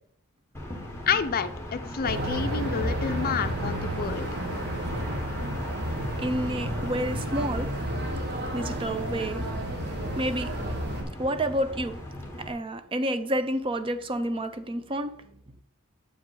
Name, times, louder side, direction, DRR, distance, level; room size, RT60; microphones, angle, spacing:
sound 1, 0.5-12.5, left 1 dB, 10° left, 1.3 m, -40 dB
voice 1, 1.1-4.3, left 6 dB, 45° left, 0.5 m, -29 dB
sound 2, 2.0-11.0, right 1 dB, 50° right, 1.4 m, -31 dB
voice 2, 6.2-7.7 8.5-9.5 10.2-10.5 11.2-12.0 12.4-15.1, right 1 dB, 25° right, 0.5 m, -29 dB
7.1 x 5.2 x 4.7 m
head